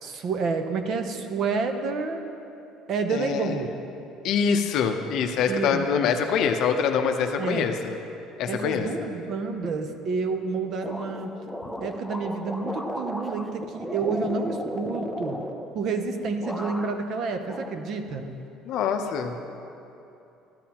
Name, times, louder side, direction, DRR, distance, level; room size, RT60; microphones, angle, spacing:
voice 1, 0.0-2.2 2.9-3.7 5.5-5.8 7.4-7.8 8.5-11.3 11.8-15.4 15.7-18.3, right 4 dB, 45° right, 7 dB, 0.7 m, -29 dB
voice 2, 3.1-3.6 4.2-8.0 8.4-8.9 18.6-19.5, left 6 dB, 55° left, 5 dB, 0.7 m, -25 dB
sound 1, 10.8-16.1 16.4-17.1 17.5-18.3, equal, ahead, 0.4 m, -35 dB
14.0 x 10.5 x 2.9 m, 2.8 s
cardioid pair, 160°, 0 cm